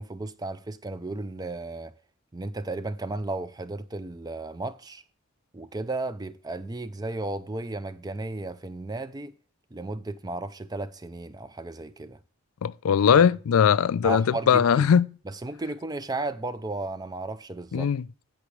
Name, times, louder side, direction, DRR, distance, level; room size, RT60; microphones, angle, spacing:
voice 1, 0.0-1.9 2.3-5.0 5.5-9.3 9.7-12.2 13.1-13.2 14.0-14.9 15.3-17.9, right 2 dB, 20° right, 0.4 m, -34 dB
voice 2, 12.6-15.1 17.7-18.0, left 7 dB, 85° left, 0.4 m, -20 dB
16.5 x 6.0 x 3.2 m
head